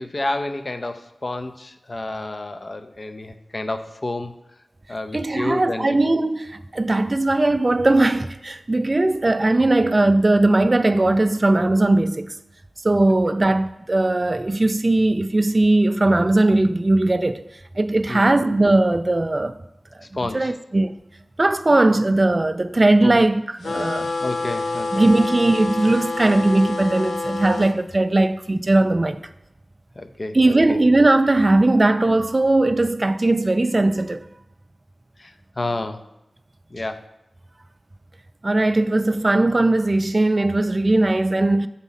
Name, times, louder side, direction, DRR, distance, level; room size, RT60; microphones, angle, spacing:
voice 1, 0.0-4.3 4.9-6.0 18.1-18.3 20.1-20.5 23.0-23.2 24.2-25.1 30.0-30.8 35.2-36.0 36.7-37.0, left 2 dB, 40° left, 0.6 m, -30 dB
voice 2, 5.1-12.4 12.8-17.4 17.8-19.6 20.3-21.0 21.4-24.1 24.9-29.2 30.3-34.3 38.4-41.7, right 2 dB, 35° right, 0.3 m, -19 dB
sound 1, 23.6-27.7, left 3 dB, 90° left, 0.5 m, -27 dB
7.1 x 4.0 x 5.6 m
wide cardioid pair, 65°, 0 cm